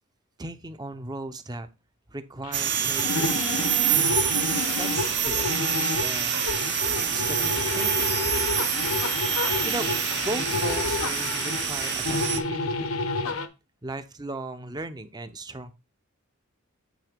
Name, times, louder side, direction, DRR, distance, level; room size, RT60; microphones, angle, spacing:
voice 1, 0.4-1.7 2.1-3.7 4.8-5.7 6.0-6.4 7.1-8.2 9.6-9.9 10.2-13.0 13.8-15.7, right 2 dB, 20° right, 10 dB, 0.6 m, -37 dB
sound 1, 2.4-13.5, left 4 dB, 85° left, 0.9 m, -30 dB
sound 2, 2.5-12.4, right 9 dB, 50° right, 0.8 m, -27 dB
9.0 x 3.2 x 5.1 m, 0.26 s
head